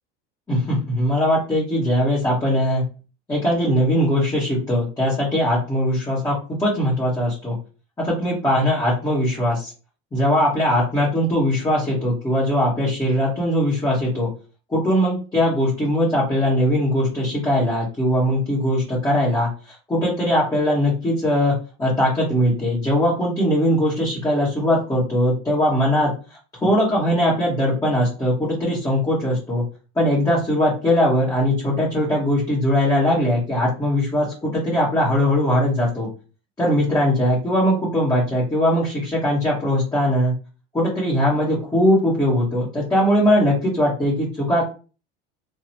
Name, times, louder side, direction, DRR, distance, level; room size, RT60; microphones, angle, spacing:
voice 1, 0.5-2.8 3.3-7.6 8.0-9.7 10.1-14.3 14.7-19.5 19.9-21.5 21.8-26.1 26.6-29.6 29.9-36.1 36.6-40.3 40.7-44.6, equal, 10° left, -8 dB, 1.4 m, -20 dB
3.7 x 2.3 x 2.9 m, 0.35 s
cardioid pair, 135°, 30 cm